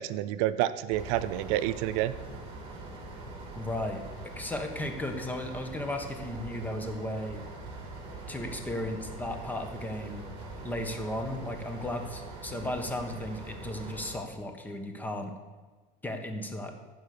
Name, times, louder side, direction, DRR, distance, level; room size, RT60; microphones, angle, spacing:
voice 1, 0.0-2.1, right 13 dB, 80° right, 14 dB, 0.5 m, -29 dB
sound 1, 0.9-14.2, right 2 dB, 35° right, 2.9 m, -43 dB
voice 2, 3.5-7.4 8.3-10.3 10.6-15.3 16.0-16.8, left 1 dB, 10° left, 5 dB, 1.3 m, -35 dB
15.0 x 5.5 x 6.7 m, 1.3 s
cardioid pair, 135°, 16 cm